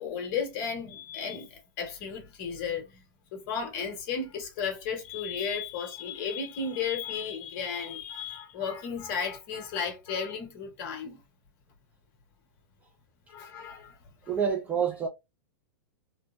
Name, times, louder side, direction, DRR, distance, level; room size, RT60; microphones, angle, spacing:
voice 1, 0.0-3.0 3.3-11.2 13.3-14.0, left 6 dB, 45° left, 1.2 m, -34 dB
voice 2, 14.3-15.1, right 7 dB, 15° right, 0.3 m, -27 dB
3.0 x 2.0 x 2.4 m
hypercardioid pair, 145°, 12 cm